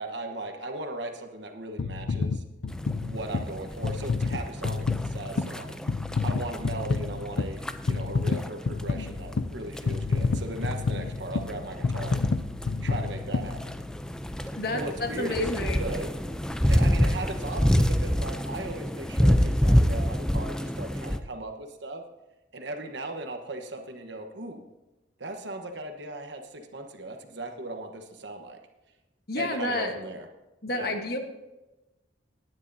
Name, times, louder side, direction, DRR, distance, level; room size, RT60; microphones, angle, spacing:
voice 1, 0.0-2.4 3.0-5.8 6.2-12.2 12.8-13.8 14.7-16.1 16.5-22.1 22.5-24.7 25.2-28.6 29.4-30.3 30.7-30.9, right 2 dB, 75° right, 5 dB, 1.2 m, -37 dB
sound 1, 1.8-14.2 14.8-14.9, left 4 dB, 75° left, 0.5 m, -30 dB
sound 2, 2.7-21.2, equal, 5° left, 0.5 m, -28 dB
voice 2, 14.5-15.9 29.3-29.9 30.6-31.2, left 2 dB, 55° left, 4 dB, 1.3 m, -30 dB
19.0 x 9.9 x 2.8 m, 1.0 s
head